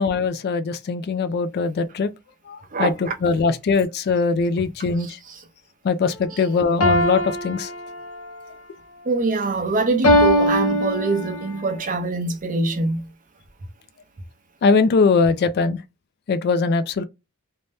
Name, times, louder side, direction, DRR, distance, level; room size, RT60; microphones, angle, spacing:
voice 1, 0.0-2.1 2.5-2.9 3.2-5.2 5.8-7.7 14.6-15.8 16.3-17.0, left 4 dB, 45° left, 0.3 m, -21 dB
sound 1, 6.8-8.4 10.0-11.5, left 1 dB, 70° left, 0.7 m, -20 dB
voice 2, 9.1-13.0, right 3 dB, 35° right, 0.6 m, -23 dB
2.6 x 2.1 x 3.2 m
head